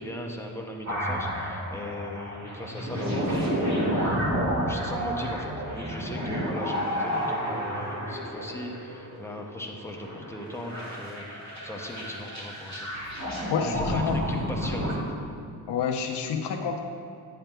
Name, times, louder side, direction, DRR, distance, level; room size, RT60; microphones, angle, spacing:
voice 1, 0.0-4.3 4.7-12.9 13.6-15.0, left 1 dB, 5° left, 0 dB, 0.5 m, -38 dB
sound 1, 0.9-14.9, equal, 45° right, 1.6 m, -30 dB
voice 2, 13.5-14.2 15.7-16.8, left 7 dB, 90° left, 1 dB, 0.7 m, -28 dB
9.2 x 8.8 x 2.2 m, 2.4 s
wide cardioid pair, 170°, 40 cm